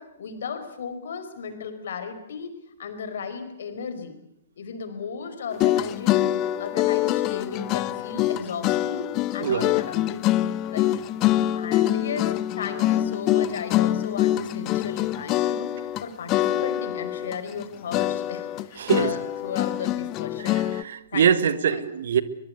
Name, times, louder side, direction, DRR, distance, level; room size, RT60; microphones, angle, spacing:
voice 1, 0.0-2.5 2.8-4.1 4.6-6.3 6.6-9.1 9.3-10.2 10.6-11.0 11.3-15.8 16.0-20.6 21.1-21.8, left 6 dB, 65° left, 4.7 m, -35 dB
sound 1, 5.5-16.0 16.3-17.6 17.9-20.8, left 13 dB, 35° left, 1.0 m, -25 dB
voice 2, 9.4-9.7 18.8-19.1 20.5-22.2, right 8 dB, 65° right, 1.7 m, -23 dB
23.0 x 22.0 x 8.2 m
figure-of-eight pair, 115°, 0 cm